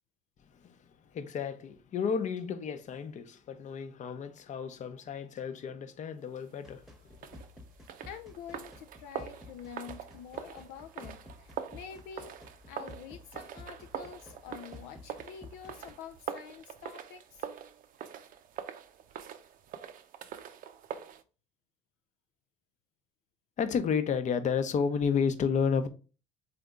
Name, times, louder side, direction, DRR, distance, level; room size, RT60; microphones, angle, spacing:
voice 1, 1.1-6.8 23.6-25.9, left 6 dB, 45° left, 0.7 m, -31 dB
sound 1, 6.6-15.9, left 2 dB, ahead, 1.0 m, -52 dB
sound 2, 7.1-21.2, right 9 dB, 55° right, 0.6 m, -44 dB
voice 2, 8.0-12.4 12.7-17.5, left 7 dB, 75° left, 0.4 m, -47 dB
4.0 x 3.4 x 3.6 m
hypercardioid pair, 65°, 17 cm